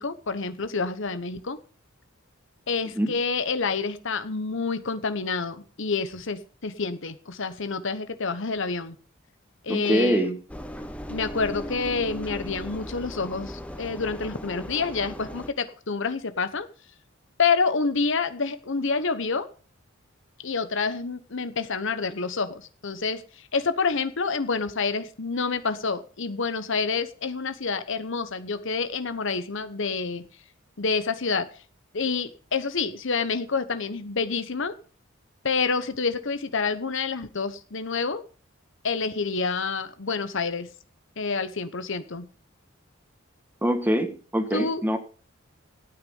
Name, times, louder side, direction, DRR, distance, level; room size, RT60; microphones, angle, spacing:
voice 1, 0.0-1.6 2.7-9.0 9.6-10.4 11.1-16.7 17.4-19.5 20.4-23.2 23.5-30.2 30.8-31.5 31.9-34.7 35.4-38.2 38.8-40.7 41.2-42.3 44.5-44.8, left 4 dB, 65° left, 12 dB, 1.1 m, -28 dB
voice 2, 9.7-10.3 43.6-45.0, equal, 10° right, 8 dB, 1.4 m, -24 dB
Engine, 10.5-15.5, equal, 5° left, 1.0 m, -37 dB
13.5 x 9.3 x 5.6 m, 0.40 s
head